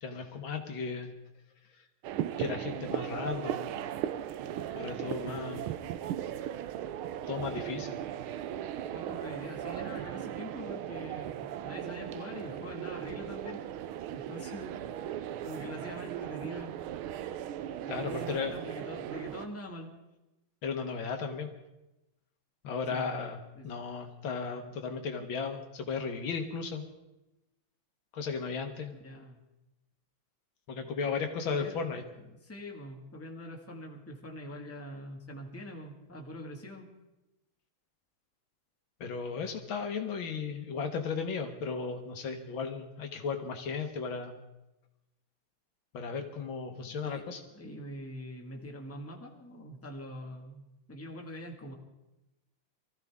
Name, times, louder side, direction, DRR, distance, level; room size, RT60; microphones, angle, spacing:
voice 1, 0.0-1.1 1.8-1.9 2.4-3.7 4.7-5.7 7.3-8.0 17.9-18.6 20.6-21.5 22.6-23.4 23.6-26.9 28.1-28.9 30.7-32.0 39.0-44.4 45.9-47.4, left 5 dB, 70° left, 5 dB, 1.9 m, -35 dB
sound 1, 2.0-19.5, right 11 dB, 80° right, 1.5 m, -37 dB
voice 2, 5.2-5.6 8.9-13.6 14.1-15.0 15.4-16.8 18.1-19.9 22.9-23.1 23.5-23.8 28.9-29.4 31.0-31.2 31.5-31.8 32.2-36.9 47.0-47.2 47.5-50.6 50.9-51.7, equal, 5° left, 0 dB, 1.6 m, -44 dB
24.0 x 14.5 x 3.6 m, 0.96 s
omnidirectional pair, 2.3 m